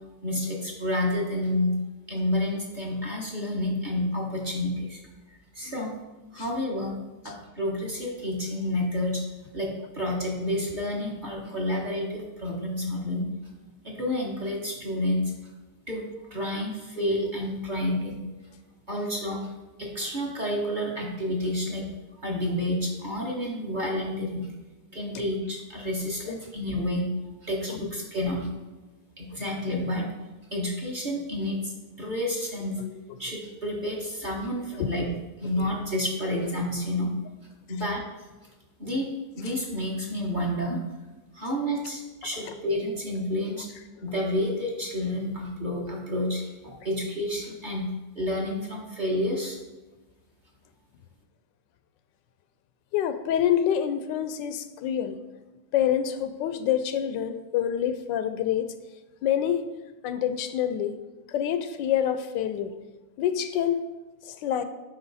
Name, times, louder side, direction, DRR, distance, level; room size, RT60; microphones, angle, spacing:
voice 1, 0.2-1.7 2.1-5.0 5.3-5.9 6.3-7.0 7.2-9.2 9.5-13.2 13.8-15.2 15.9-16.0 16.3-18.4 18.9-19.5 19.8-21.8 22.2-24.5 24.9-27.1 27.4-28.5 29.2-30.1 30.5-31.7 32.0-32.8 33.2-35.1 35.4-37.1 37.7-38.0 38.8-39.1 39.4-40.8 41.3-43.7 44.0-47.9 48.1-49.6, left 1 dB, 30° right, -2 dB, 1.2 m, -29 dB
voice 2, 52.9-55.2 55.7-58.7 59.2-59.6 60.0-60.9 61.3-62.7 63.2-63.9 64.3-64.6, left 10 dB, 80° left, 11 dB, 1.2 m, -26 dB
10.5 x 4.3 x 4.1 m, 1.1 s
omnidirectional pair, 1.9 m